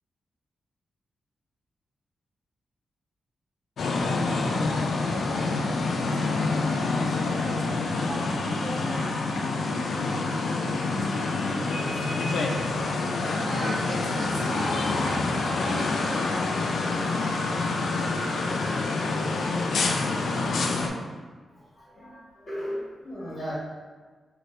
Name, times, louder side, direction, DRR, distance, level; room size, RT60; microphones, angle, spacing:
sound 1, 3.8-20.9, left 3 dB, 70° left, 0.3 m, -27 dB
voice 1, 5.2-12.1 13.4-16.2, right 1 dB, 35° right, -2 dB, 0.6 m, -38 dB
voice 2, 21.5-23.5, equal, 40° left, -8 dB, 1.4 m, -36 dB
3.2 x 2.9 x 2.6 m, 1.4 s
wide cardioid pair, 130°, 0 cm